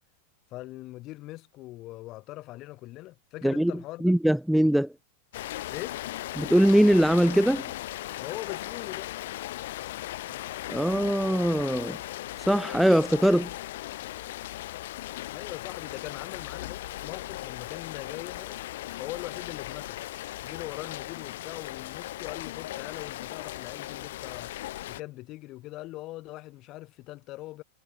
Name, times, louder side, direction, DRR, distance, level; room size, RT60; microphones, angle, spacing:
voice 1, 0.5-4.1 5.7-6.0 8.2-9.1 15.3-18.6 19.0-20.0 20.4-24.5 24.9-27.6, left 18 dB, 40° left, 3.7 m, -41 dB
voice 2, 4.0-4.9 6.4-7.7 10.7-12.0 12.5-13.5, equal, ahead, 1.5 m, -22 dB
Rain, 5.3-25.0, left 15 dB, 60° left, 1.1 m, -38 dB
figure-of-eight pair, 95°, 0 cm